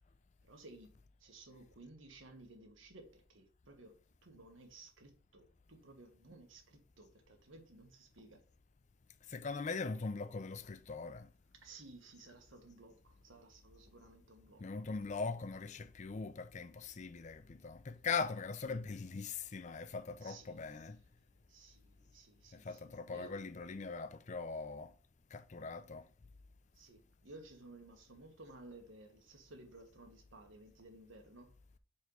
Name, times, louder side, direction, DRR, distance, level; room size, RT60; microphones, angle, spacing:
voice 1, 0.4-0.9 1.2-8.4 11.6-15.4 20.2-21.1 21.5-23.4 26.7-31.5, right 2 dB, 85° right, 1.5 m, -57 dB
voice 2, 9.3-11.3 14.6-21.0 22.5-24.9 25.3-26.1, left 4 dB, 35° left, 0.4 m, -41 dB
4.5 x 4.3 x 5.3 m
head